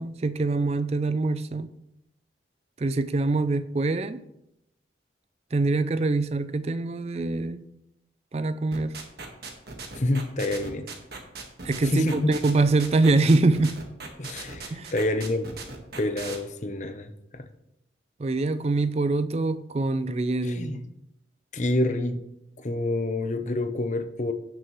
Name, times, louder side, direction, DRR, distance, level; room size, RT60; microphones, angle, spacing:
voice 1, 0.0-1.7 2.8-4.2 5.5-7.7 8.3-8.9 11.6-13.8 14.7-14.9 18.2-20.9, right 3 dB, 35° right, 0.4 m, -24 dB
sound 1, 8.7-16.4, right 4 dB, 60° right, 1.6 m, -38 dB
voice 2, 10.0-10.9 11.8-12.2 14.2-15.6 16.0-17.5 20.4-20.8 21.5-22.2 22.6-24.3, left 1 dB, 40° left, 0.7 m, -28 dB
16.0 x 6.4 x 3.1 m
head